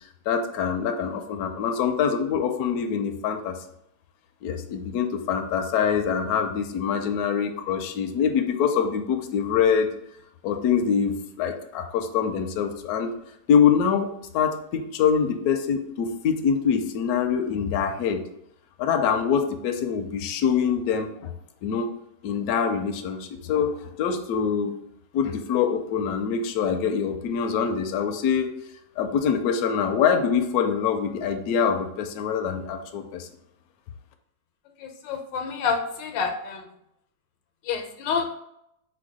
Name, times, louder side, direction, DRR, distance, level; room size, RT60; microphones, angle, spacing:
voice 1, 0.3-3.6 4.4-9.9 10.4-13.1 13.5-18.2 18.8-21.3 21.6-21.9 22.2-24.8 25.1-28.5 29.0-33.3, left 7 dB, 70° left, 6 dB, 0.9 m, -24 dB
voice 2, 34.8-36.7 37.6-38.4, left 5 dB, 90° left, 6 dB, 1.4 m, -28 dB
4.6 x 2.2 x 4.7 m, 0.78 s
omnidirectional pair, 1.9 m